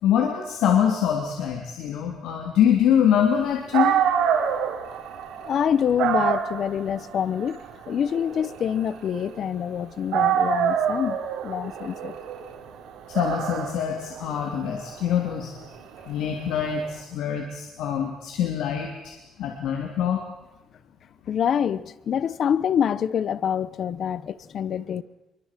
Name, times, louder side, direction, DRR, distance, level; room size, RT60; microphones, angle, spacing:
voice 1, 0.0-4.0 13.1-15.5 16.1-19.1 19.4-20.2, left 9 dB, 90° left, 2 dB, 3.0 m, -24 dB
Dog, 3.4-3.5 3.7-9.7 10.1-16.9, right 8 dB, 85° right, 4.1 m, -27 dB
voice 2, 5.4-7.6 7.9-11.2 11.4-12.2 21.3-25.0, left 8 dB, 50° left, 17 dB, 0.9 m, -26 dB
25.0 x 23.0 x 7.5 m, 1.0 s
cardioid pair, 145°, 0 cm